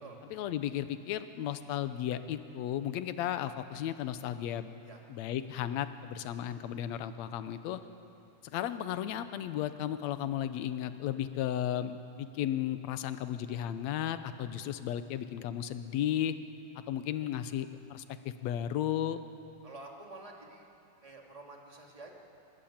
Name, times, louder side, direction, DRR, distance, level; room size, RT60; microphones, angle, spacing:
voice 1, 0.3-4.7 5.1-7.8 8.4-16.4 16.9-19.2, left 11 dB, 70° left, 11 dB, 1.8 m, -34 dB
voice 2, 19.6-20.7 21.0-22.1, right 2 dB, 10° right, -1 dB, 2.1 m, -49 dB
23.5 x 20.5 x 8.8 m, 2.8 s
omnidirectional pair, 3.8 m